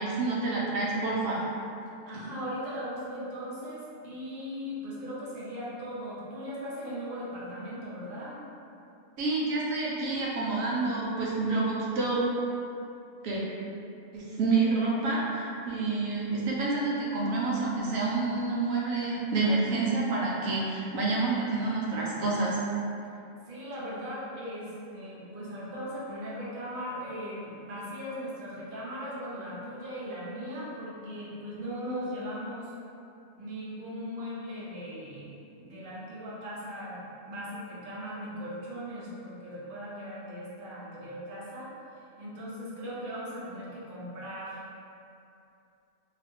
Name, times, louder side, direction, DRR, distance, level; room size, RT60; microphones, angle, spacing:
voice 1, 0.0-1.4 9.2-12.3 13.2-13.4 14.1-22.6, right 3 dB, 85° right, -5 dB, 1.1 m, -28 dB
voice 2, 2.1-8.4 23.5-32.7 33.4-35.3 35.5-41.7 42.2-44.7, equal, 50° right, -7 dB, 0.8 m, -38 dB
2.7 x 2.4 x 3.5 m, 2.6 s
omnidirectional pair, 1.4 m